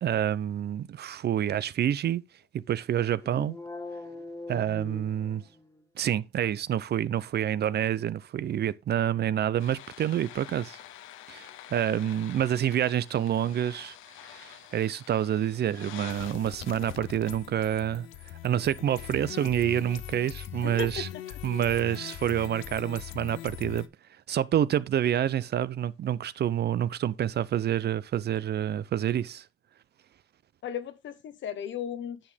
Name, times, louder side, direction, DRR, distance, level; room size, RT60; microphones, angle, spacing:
voice 1, 0.0-2.2 2.5-3.6 4.5-5.4 6.0-10.8 11.3-14.0 14.2-18.1 18.4-21.1 21.4-23.9 24.3-29.5, right 10 dB, 55° right, 0.6 m, -28 dB
sound 1, 3.2-5.8, left 2 dB, 15° left, 1.7 m, -41 dB
sound 2, 9.6-23.9, left 12 dB, 90° left, 0.8 m, -43 dB
voice 2, 20.6-21.1 30.6-32.2, left 8 dB, 70° left, 1.1 m, -35 dB
10.5 x 6.4 x 3.5 m
cardioid pair, 90°, 20 cm